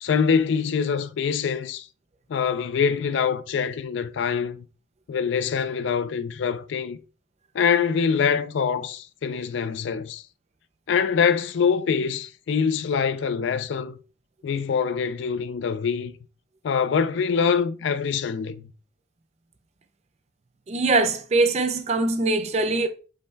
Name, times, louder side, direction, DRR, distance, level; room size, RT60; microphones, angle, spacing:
voice 1, 0.0-1.9 2.3-4.7 5.1-7.0 7.5-10.2 10.9-14.0 14.4-16.1 16.6-18.6, left 6 dB, 75° left, 0.3 m, -24 dB
voice 2, 20.7-22.9, right 3 dB, 35° right, 0.4 m, -22 dB
5.4 x 2.2 x 3.2 m
head